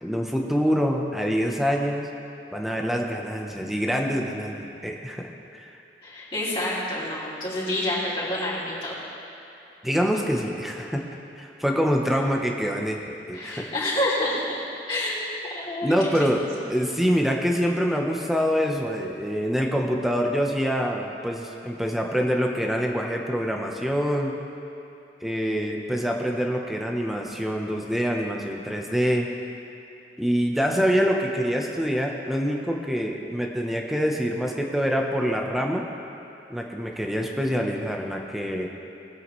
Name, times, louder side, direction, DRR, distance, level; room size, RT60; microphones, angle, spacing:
voice 1, 0.0-2.1 2.5-5.7 9.8-11.0 11.4-13.0 13.3-13.7 15.8-24.3 25.2-29.3 30.2-35.8 36.5-38.7, equal, ahead, 0 dB, 0.8 m, -25 dB
voice 2, 6.0-9.0 13.3-14.4 14.9-15.2 15.5-16.1, left 1 dB, 30° left, -10 dB, 2.8 m, -28 dB
19.5 x 7.8 x 3.2 m, 2.9 s
head